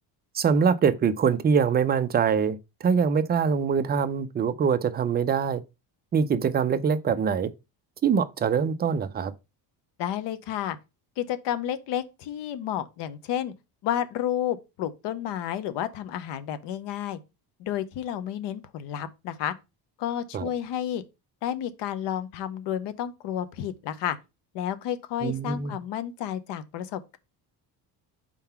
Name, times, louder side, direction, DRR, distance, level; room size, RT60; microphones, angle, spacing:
voice 1, 0.3-5.6 6.1-7.5 8.0-9.3 20.3-20.5 25.2-25.7, right 6 dB, 25° right, 0.4 m, -24 dB
voice 2, 10.0-10.8 11.2-13.5 13.8-17.2 17.6-19.5 20.0-21.0 21.4-24.2 24.5-27.2, left 10 dB, 70° left, 0.9 m, -31 dB
4.5 x 3.8 x 5.6 m
cardioid pair, 145°, 44 cm